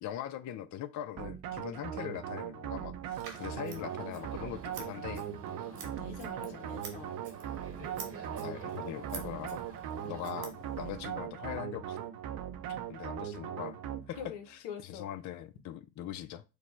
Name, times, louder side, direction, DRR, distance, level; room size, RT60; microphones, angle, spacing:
voice 1, 0.0-5.3 7.8-7.9 8.1-9.6 10.0-12.0 12.9-13.8 14.1-14.2 14.5-16.4, left 11 dB, 50° left, 0.5 m, -41 dB
sound 1, 1.2-14.4, right 10 dB, 65° right, 0.7 m, -40 dB
Scissors, 3.1-11.1, right 6 dB, 85° right, 1.4 m, -50 dB
sound 2, 3.3-10.2, right 5 dB, 40° right, 0.9 m, -49 dB
voice 2, 5.7-7.1 12.6-12.8 14.2-15.1, left 8 dB, 90° left, 0.8 m, -45 dB
4.9 x 2.1 x 4.4 m
supercardioid pair, 65°, 37 cm